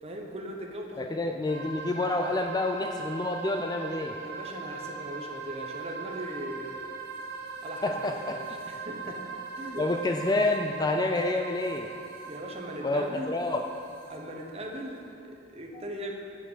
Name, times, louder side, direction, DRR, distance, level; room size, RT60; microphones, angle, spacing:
voice 1, 0.0-1.2 4.2-6.9 7.6-9.2 9.5-9.9 12.2-13.3 14.1-16.1, right 1 dB, 30° right, 1 dB, 1.1 m, -39 dB
voice 2, 1.0-4.2 7.8-8.4 9.8-11.9 12.8-13.6 15.7-15.8, left 2 dB, 20° left, 4 dB, 0.4 m, -28 dB
sound 1, 1.5-15.0, right 4 dB, 65° right, 2.0 m, -40 dB
7.9 x 7.7 x 8.2 m, 2.5 s
head